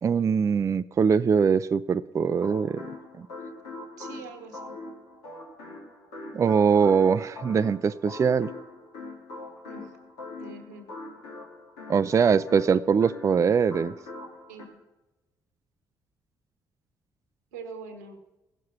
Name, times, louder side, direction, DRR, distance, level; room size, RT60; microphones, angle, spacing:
voice 1, 0.0-2.8 6.3-8.5 11.9-13.9, right 6 dB, 35° right, 13 dB, 0.4 m, -22 dB
sound 1, 2.3-14.7, left 2 dB, 80° left, 2.2 m, -42 dB
voice 2, 4.0-4.8 9.7-10.0 10.4-10.9 14.5-14.8 17.5-18.2, right 4 dB, 85° right, 8 dB, 1.1 m, -43 dB
15.5 x 6.6 x 5.8 m, 1.0 s
hypercardioid pair, 45°, 9 cm